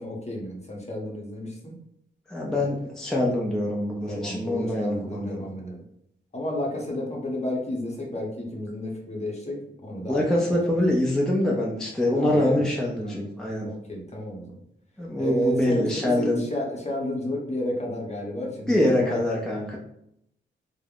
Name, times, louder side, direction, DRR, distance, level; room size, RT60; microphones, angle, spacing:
voice 1, 0.0-1.7 2.5-2.7 4.1-5.8 6.3-10.2 10.5-10.6 10.8-10.9 12.1-12.7 13.0-13.2 13.7-14.6 15.2-19.2, left 1 dB, 30° left, -1 dB, 0.8 m, -31 dB
voice 2, 2.3-5.5 10.1-13.7 15.0-16.4 18.7-19.8, left 1 dB, 5° left, -3 dB, 0.5 m, -24 dB
3.4 x 2.1 x 2.3 m, 0.75 s
cardioid pair, 65°, 21 cm